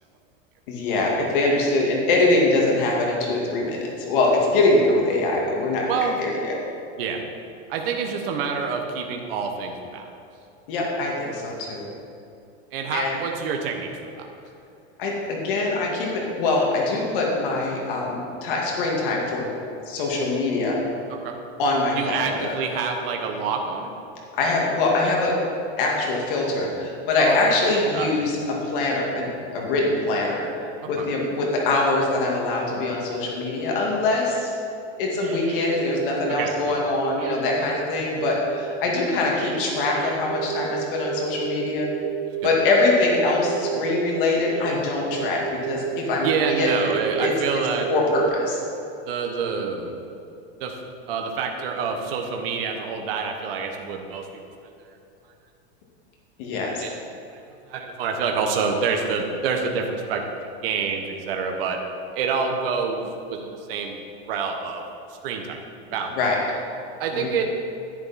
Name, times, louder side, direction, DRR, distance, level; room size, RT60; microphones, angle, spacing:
voice 1, 0.7-6.5 10.7-11.9 12.9-13.2 15.0-19.5 19.9-20.8 21.6-22.6 24.4-25.3 25.8-30.5 30.9-34.5 35.0-41.9 42.4-46.9 47.2-47.3 47.9-48.6 56.4-56.8 66.2-66.4 67.1-67.3, left 2 dB, 55° left, -2 dB, 2.1 m, -23 dB
voice 2, 5.9-6.2 7.0-7.2 7.7-10.1 12.7-14.2 21.2-21.3 22.0-23.9 27.2-27.6 27.9-28.1 31.0-31.1 36.4-36.8 42.4-42.5 46.2-47.9 49.1-49.9 50.6-50.8 51.1-54.2 56.8-57.0 57.3-57.4 57.7-60.2 60.6-61.8 62.1-64.8 65.2-65.6 65.9-66.1 67.0-67.4, right 5 dB, 60° right, 3 dB, 1.3 m, -27 dB
sound 1, 34.6-34.7 35.0-36.4 36.9-37.8 38.2-42.5 43.1-44.0 44.4-44.8 45.1-48.3, right 12 dB, 35° right, 0.4 m, -32 dB
10.5 x 10.0 x 4.2 m, 2.6 s
supercardioid pair, 175°, 33 cm